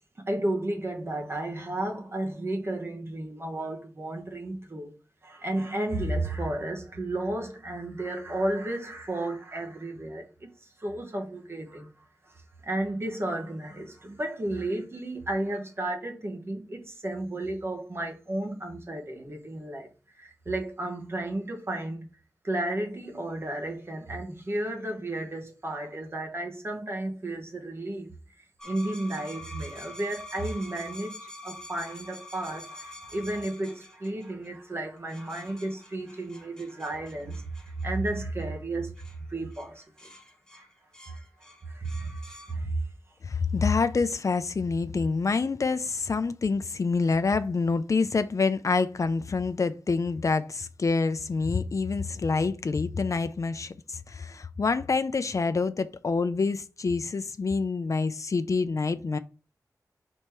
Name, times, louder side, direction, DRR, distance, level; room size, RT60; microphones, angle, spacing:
voice 1, 0.2-4.9 5.2-11.9 12.2-12.3 12.6-19.9 20.2-22.1 22.4-28.1 28.6-39.0 39.3-40.1 40.5-40.7 41.1-42.8, right 1 dB, 40° right, 1.5 m, -33 dB
sound 1, 28.6-34.5 35.1-38.4 39.0-39.2 39.5-39.7 40.0-42.5, left 1 dB, 10° left, 1.1 m, -46 dB
voice 2, 43.2-59.2, left 4 dB, 55° left, 0.5 m, -27 dB
5.2 x 4.3 x 4.6 m
wide cardioid pair, 100°, 7 cm